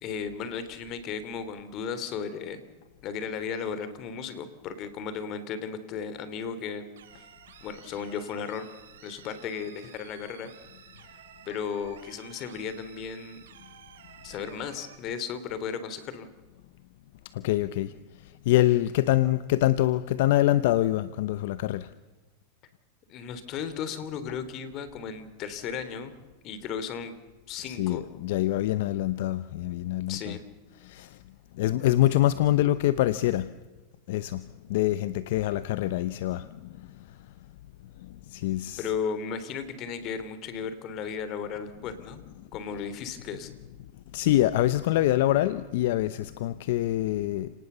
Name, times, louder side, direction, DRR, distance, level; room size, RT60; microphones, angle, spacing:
voice 1, 0.0-2.6 3.0-6.8 7.6-8.7 9.0-10.5 11.4-13.4 14.2-16.3 23.1-26.1 26.4-27.2 27.5-28.0 30.1-30.4 38.8-42.2 42.5-43.5, left 6 dB, 40° left, 3.2 m, -35 dB
sound 1, 7.0-15.0, right 9 dB, 80° right, 4.5 m, -52 dB
voice 2, 17.3-17.9 18.2-21.9 27.7-30.4 30.8-31.2 31.6-33.5 34.1-36.5 36.8-36.9 38.3-38.9 44.1-47.5, left 14 dB, 65° left, 0.9 m, -25 dB
29.0 x 19.5 x 6.9 m
hypercardioid pair, 125°, 0 cm